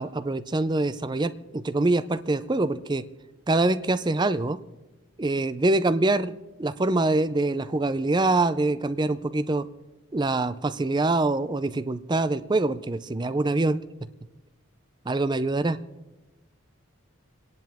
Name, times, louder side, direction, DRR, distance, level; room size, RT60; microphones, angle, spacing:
voice 1, 0.0-3.1 3.5-4.6 5.2-9.7 10.1-13.8 15.1-15.8, right 2 dB, 20° right, 14 dB, 0.4 m, -25 dB
29.0 x 10.5 x 3.5 m, 1.1 s
head